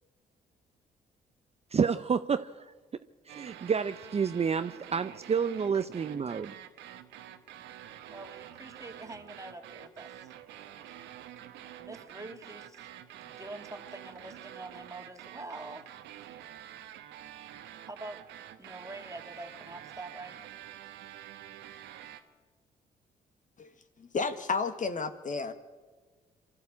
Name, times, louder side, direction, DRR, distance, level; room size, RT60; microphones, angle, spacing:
voice 1, 1.7-2.7 3.3-6.5, right 6 dB, 35° right, 11 dB, 0.7 m, -29 dB
sound 1, 3.3-22.2, right 11 dB, 80° right, 1.2 m, -48 dB
voice 2, 8.1-10.3 10.9-11.0 11.7-12.9 13.2-16.0 17.9-18.3 18.6-20.4, right 2 dB, 15° right, 6 dB, 2.3 m, -45 dB
voice 3, 24.0-25.5, left 4 dB, 45° left, 9 dB, 1.6 m, -32 dB
24.0 x 13.0 x 8.5 m, 1.4 s
hypercardioid pair, 55°, 18 cm